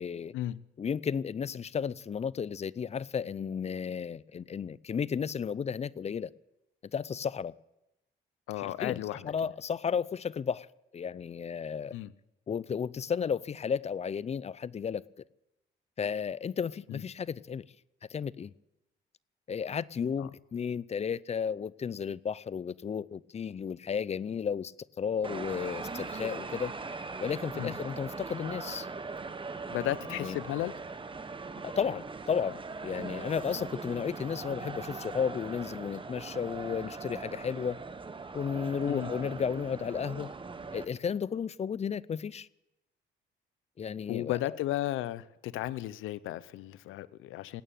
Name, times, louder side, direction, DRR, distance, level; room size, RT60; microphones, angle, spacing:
voice 1, 0.0-0.3 0.8-6.3 6.9-7.5 8.6-10.7 10.9-11.9 12.5-15.0 16.0-17.6 18.1-18.5 19.5-26.7 27.2-28.9 30.1-30.4 31.6-37.8 38.3-40.3 40.7-42.5 43.8-44.6, left 7 dB, 35° left, 0.5 m, -33 dB
voice 2, 8.5-9.3 11.9-12.1 16.9-17.0 20.2-20.3 27.6-27.7 29.7-30.7 38.9-39.1 44.1-47.6, left 14 dB, 90° left, 0.6 m, -34 dB
sound 1, 25.2-40.9, right 4 dB, 25° right, 1.2 m, -40 dB
18.0 x 8.9 x 9.0 m
cardioid pair, 90°, 20 cm